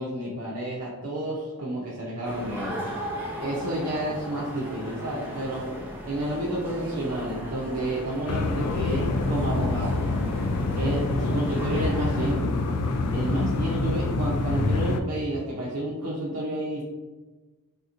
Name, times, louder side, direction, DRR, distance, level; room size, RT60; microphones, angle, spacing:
voice 1, 0.0-2.8 3.4-5.6 6.1-10.0 10.8-12.5 13.1-16.8, right 1 dB, 75° right, -5 dB, 0.6 m, -30 dB
sound 1, 2.2-12.4, equal, 10° right, 0.6 m, -37 dB
sound 2, 8.3-15.0, left 3 dB, 85° left, 0.3 m, -26 dB
3.6 x 2.8 x 2.4 m, 1.2 s
head